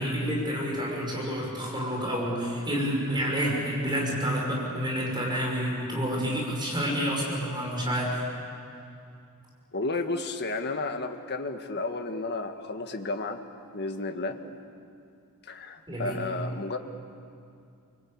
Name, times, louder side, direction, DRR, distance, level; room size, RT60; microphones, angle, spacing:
voice 1, 0.0-8.2 15.9-16.2, equal, 20° right, -2 dB, 5.5 m, -29 dB
voice 2, 9.7-13.4 13.7-14.4 15.5-16.8, left 3 dB, 50° left, 6 dB, 1.7 m, -32 dB
28.0 x 24.5 x 8.7 m, 2.5 s
head